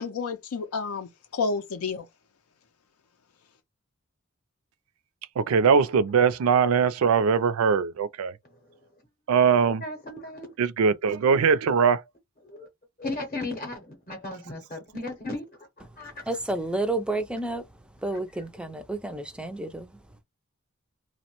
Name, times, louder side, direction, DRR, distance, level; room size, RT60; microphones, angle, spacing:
voice 1, 0.0-2.0, left 4 dB, 80° left, 0.4 m, -30 dB
voice 2, 5.4-8.3 9.3-9.8 10.6-12.0, right 6 dB, 75° right, 0.4 m, -21 dB
voice 3, 9.8-10.5 12.4-12.7 13.0-16.2 18.1-18.7, left 2 dB, 35° left, 0.7 m, -36 dB
voice 4, 16.3-17.6 18.0-19.9, right 2 dB, 5° right, 0.3 m, -30 dB
2.9 x 2.1 x 2.9 m
head